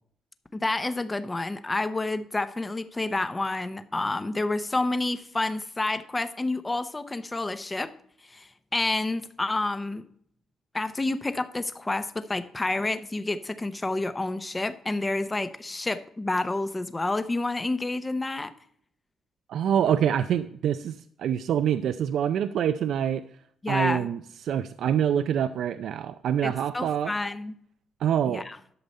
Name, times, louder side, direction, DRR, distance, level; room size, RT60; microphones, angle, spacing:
voice 1, 0.5-7.9 8.3-10.1 10.7-18.5 23.6-24.1 26.4-27.6 28.3-28.6, left 2 dB, 15° left, 11 dB, 0.7 m, -29 dB
voice 2, 19.5-23.2 23.7-27.1 28.0-28.4, right 9 dB, 70° right, 10 dB, 0.4 m, -26 dB
11.5 x 6.8 x 4.2 m, 0.63 s
cardioid pair, 110°, 0 cm